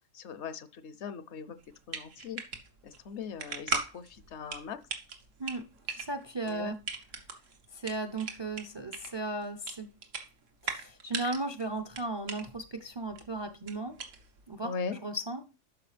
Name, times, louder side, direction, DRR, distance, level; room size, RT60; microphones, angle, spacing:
voice 1, 0.1-1.6 1.9-2.4 2.8-4.8 6.5-6.8 14.6-15.0, left 6 dB, 70° left, 0.9 m, -39 dB
sound 1, 1.6-14.5, right 5 dB, 85° right, 1.5 m, -40 dB
voice 2, 5.4-6.8 7.7-9.9 10.6-13.9 14.5-15.4, right 2 dB, 35° right, 0.4 m, -36 dB
12.0 x 4.7 x 3.3 m
omnidirectional pair, 1.3 m